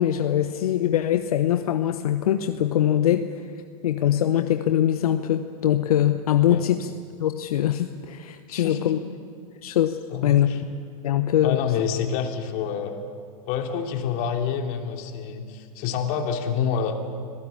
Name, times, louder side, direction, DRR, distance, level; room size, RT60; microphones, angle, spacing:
voice 1, 0.0-3.3 3.8-6.9 7.2-9.0 9.6-10.0 10.2-10.5 11.0-11.6, left 11 dB, 80° left, 9 dB, 0.9 m, -22 dB
voice 2, 8.5-8.9 10.1-10.6 11.4-12.9 13.5-17.0, left 7 dB, 50° left, 4 dB, 3.0 m, -27 dB
25.5 x 17.5 x 8.7 m, 2.3 s
hypercardioid pair, 110°, 19 cm